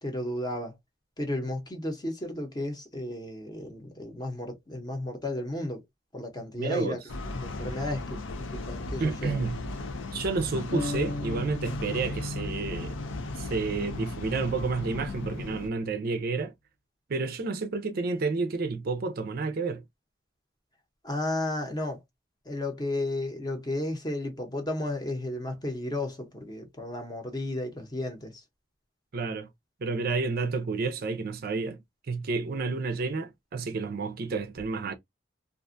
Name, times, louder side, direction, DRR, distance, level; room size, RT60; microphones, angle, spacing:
voice 1, 0.0-0.7 1.2-5.8 6.1-7.0 7.3-8.2 8.5-9.5 21.0-22.0 22.5-28.3, left 1 dB, 20° left, 0.7 m, -33 dB
voice 2, 6.5-7.0 9.0-9.6 10.1-13.0 13.4-16.5 17.1-19.8 29.1-29.5 29.8-31.8 32.1-34.9, right 4 dB, 50° right, 0.4 m, -30 dB
sound 1, 7.1-15.7, left 2 dB, 70° left, 0.5 m, -36 dB
sound 2, 10.7-14.5, left 2 dB, 55° left, 1.0 m, -37 dB
2.4 x 2.3 x 2.5 m
head